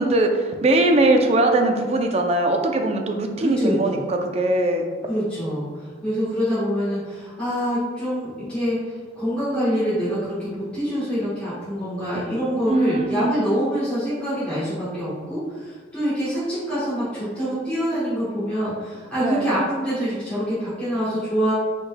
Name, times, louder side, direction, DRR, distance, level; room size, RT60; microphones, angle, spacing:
voice 1, 0.0-4.8 12.7-13.5 19.2-19.5, right 2 dB, 30° right, 4 dB, 0.4 m, -20 dB
voice 2, 3.4-4.0 5.0-8.8 9.2-21.5, equal, 5° left, -13 dB, 1.2 m, -25 dB
5.2 x 3.9 x 2.2 m, 1.5 s
head